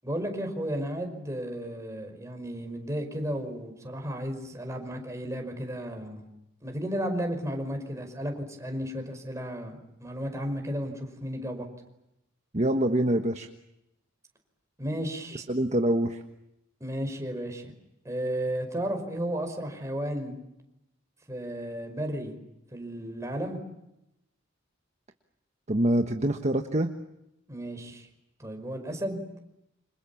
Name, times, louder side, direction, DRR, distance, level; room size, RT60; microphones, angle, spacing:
voice 1, 0.0-6.3 6.6-11.7 14.8-15.4 16.8-17.7 18.0-20.4 21.3-22.4 22.7-23.6 27.5-28.1 28.4-29.2, equal, 15° right, 4 dB, 5.4 m, -33 dB
voice 2, 12.5-13.5 15.3-16.2 25.7-26.9, right 1 dB, 35° right, 5 dB, 1.4 m, -25 dB
29.0 x 27.0 x 7.2 m, 0.86 s
head